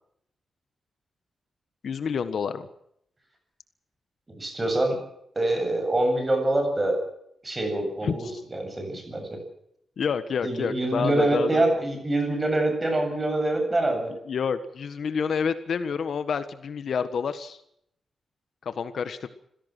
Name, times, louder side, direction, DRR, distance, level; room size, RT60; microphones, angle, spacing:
voice 1, 1.8-2.7 8.0-8.3 10.0-11.6 14.3-17.6 18.6-19.3, left 6 dB, 60° left, 11 dB, 1.5 m, -28 dB
voice 2, 4.3-5.0 5.3-7.0 7.4-9.3 10.4-14.1, right 2 dB, 20° right, 4 dB, 7.9 m, -25 dB
26.5 x 17.0 x 6.2 m, 0.73 s
wide cardioid pair, 160°, 0 cm